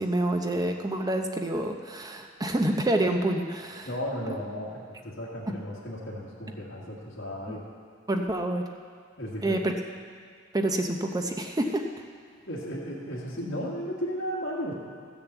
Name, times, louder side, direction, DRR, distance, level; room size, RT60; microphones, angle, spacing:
voice 1, 0.0-3.9 4.3-4.4 8.1-8.6 9.4-9.6 10.5-11.9, right 1 dB, 20° right, 4 dB, 0.7 m, -27 dB
voice 2, 3.9-7.6 9.2-9.6 12.5-14.7, equal, 65° left, -7 dB, 1.9 m, -34 dB
14.0 x 6.9 x 8.1 m, 2.1 s
head